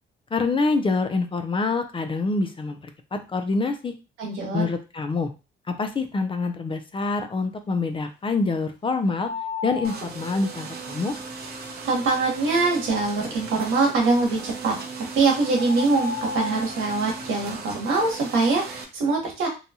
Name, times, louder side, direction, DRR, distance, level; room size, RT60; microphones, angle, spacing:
voice 1, 0.3-3.9 4.5-5.3 5.7-9.3 9.6-11.2, left 3 dB, 25° left, 7 dB, 0.4 m, -26 dB
voice 2, 4.2-4.6 11.9-14.7 15.1-19.5, right 3 dB, 90° right, 0 dB, 1.1 m, -23 dB
sound 1, 9.2-10.1 14.7-14.8 15.5-16.8, left 5 dB, 70° left, 1.2 m, -33 dB
sound 2, 9.8-18.8, right 4 dB, 55° right, 0.7 m, -37 dB
2.7 x 2.2 x 2.7 m, 0.29 s
cardioid pair, 90°, 20 cm